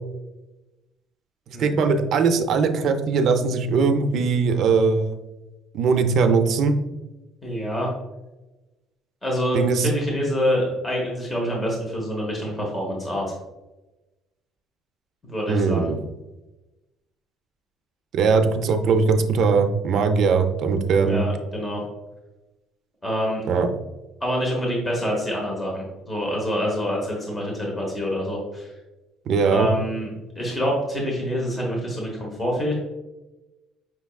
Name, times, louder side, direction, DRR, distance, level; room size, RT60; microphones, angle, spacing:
voice 1, 1.6-5.2 5.7-6.7 9.5-9.9 15.5-16.0 18.1-21.2 23.5-23.7 29.3-29.7, right 5 dB, 50° right, 7 dB, 0.4 m, -20 dB
voice 2, 7.4-7.9 9.2-13.2 15.3-15.9 21.0-21.8 23.0-23.4 24.2-28.7 29.4-30.1 30.4-32.7, equal, 10° left, -2 dB, 0.9 m, -26 dB
5.7 x 3.5 x 2.3 m, 1.0 s
cardioid pair, 170°, 0 cm